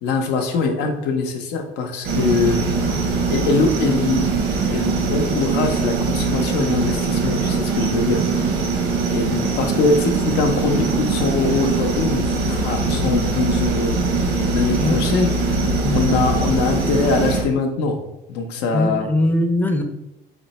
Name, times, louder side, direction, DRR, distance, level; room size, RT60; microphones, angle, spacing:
voice 1, 0.0-2.7 3.3-4.4 4.7-8.2 9.0-14.1 14.4-15.6 15.9-18.0 18.3-19.1, left 4 dB, 90° left, 4 dB, 0.7 m, -22 dB
sound 1, 2.0-17.4, right 3 dB, 85° right, 0.9 m, -22 dB
voice 2, 18.7-19.8, left 1 dB, 10° left, 4 dB, 0.5 m, -20 dB
4.3 x 2.0 x 4.0 m, 0.90 s
cardioid pair, 110°, 17 cm